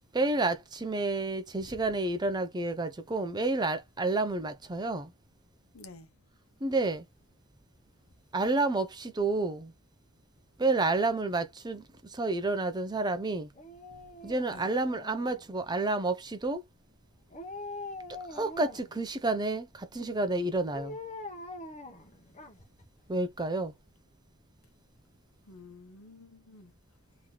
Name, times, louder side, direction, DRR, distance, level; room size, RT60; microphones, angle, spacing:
voice 1, 0.1-5.1 6.6-7.0 8.3-9.7 10.6-13.5 14.2-16.6 18.3-21.0 23.1-23.7, right 2 dB, 20° right, 0.5 m, -30 dB
voice 2, 5.7-6.1 13.9-14.0 14.4-14.7 25.5-26.7, left 2 dB, 70° left, 1.0 m, -50 dB
Dog, 13.5-15.6 17.3-19.0 20.7-22.8 23.2-23.3, left 2 dB, 35° left, 1.1 m, -43 dB
3.0 x 3.0 x 3.7 m
head